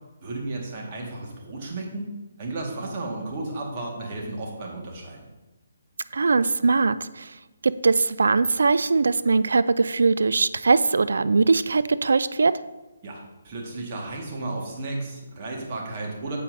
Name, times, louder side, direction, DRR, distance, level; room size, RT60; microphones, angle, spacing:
voice 1, 0.2-2.1 2.4-5.3 13.0-16.4, right 2 dB, 35° right, -1 dB, 1.8 m, -33 dB
voice 2, 6.1-7.3 7.6-12.5, right 4 dB, 60° right, 14 dB, 0.3 m, -21 dB
8.8 x 7.3 x 2.7 m, 1.1 s
figure-of-eight pair, 140°, 0 cm